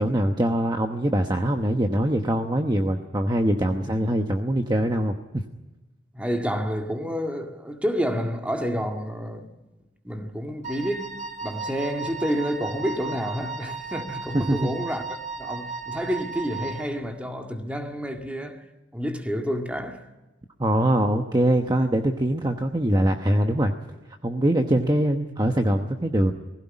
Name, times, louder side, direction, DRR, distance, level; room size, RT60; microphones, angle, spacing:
voice 1, 0.0-5.4 14.3-14.7 20.6-23.7 24.2-26.3, right 1 dB, 20° right, 1.0 m, -23 dB
voice 2, 6.1-9.5 10.0-11.1 11.4-18.6 18.9-20.1, equal, 5° right, 1.9 m, -29 dB
Wind instrument woodwind instrument, 10.6-17.0, right 5 dB, 40° right, 1.9 m, -35 dB
19.5 x 16.5 x 9.9 m
head